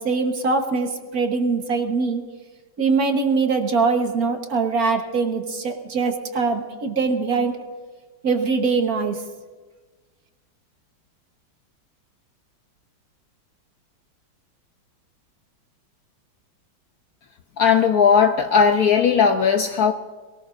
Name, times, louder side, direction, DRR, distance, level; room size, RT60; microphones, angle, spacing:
voice 1, 0.0-2.2 2.8-7.6 8.2-9.2, right 4 dB, 50° right, 4 dB, 1.7 m, -22 dB
voice 2, 17.6-19.9, left 6 dB, 65° left, 6 dB, 1.0 m, -17 dB
22.0 x 19.0 x 2.6 m, 1.4 s
omnidirectional pair, 2.1 m